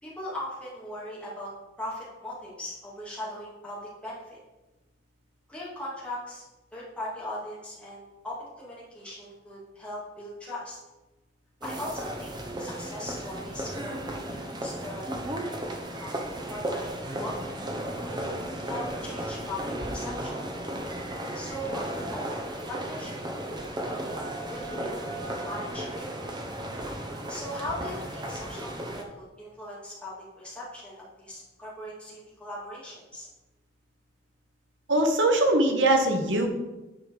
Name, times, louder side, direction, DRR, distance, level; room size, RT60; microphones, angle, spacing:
voice 1, 0.0-1.5 1.8-4.4 5.5-6.4 6.7-10.8 11.6-15.6 16.0-16.2 16.5-17.6 18.1-18.3 18.6-20.3 21.3-23.2 23.5-26.1 27.3-33.3, left 1 dB, 5° left, -7 dB, 2.8 m, -39 dB
sound 1, 11.6-29.0, right 1 dB, 25° right, 0.9 m, -35 dB
voice 2, 34.9-36.5, right 1 dB, 85° right, 3 dB, 1.3 m, -22 dB
9.7 x 5.0 x 5.1 m, 1.1 s
head